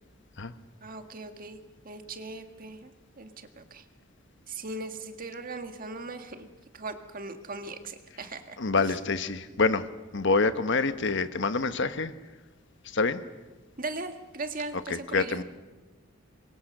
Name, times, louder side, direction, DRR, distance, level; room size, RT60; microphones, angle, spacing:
voice 1, 0.8-1.6 1.9-2.9 3.2-3.8 4.5-6.5 6.7-9.0 13.8-15.4, right 3 dB, 45° right, 7 dB, 1.8 m, -39 dB
voice 2, 8.6-9.8 10.1-12.1 12.9-13.2 14.9-15.4, left 4 dB, 60° left, 11 dB, 1.2 m, -26 dB
26.5 x 23.0 x 6.7 m, 1.2 s
head